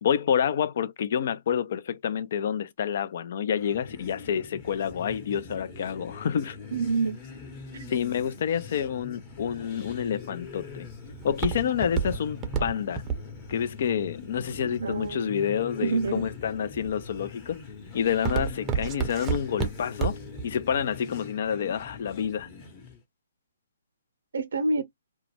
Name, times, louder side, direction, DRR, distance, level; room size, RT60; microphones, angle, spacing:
voice 1, 0.0-6.6 7.9-10.9 11.2-13.0 13.5-17.6 17.9-20.2 20.4-22.5, left 8 dB, 55° left, 0.4 m, -28 dB
sound 1, 3.5-23.0, left 5 dB, 30° left, 0.9 m, -43 dB
voice 2, 6.7-7.2 7.7-7.9 14.8-15.4 15.8-16.3 24.3-24.8, right 3 dB, 70° right, 0.6 m, -27 dB
Walk footsteps, 10.1-15.3 15.9-16.3 16.8-17.2 17.5-20.4 20.8-20.9, right 7 dB, 20° right, 0.5 m, -30 dB
2.2 x 2.1 x 3.1 m
hypercardioid pair, 135°, 0 cm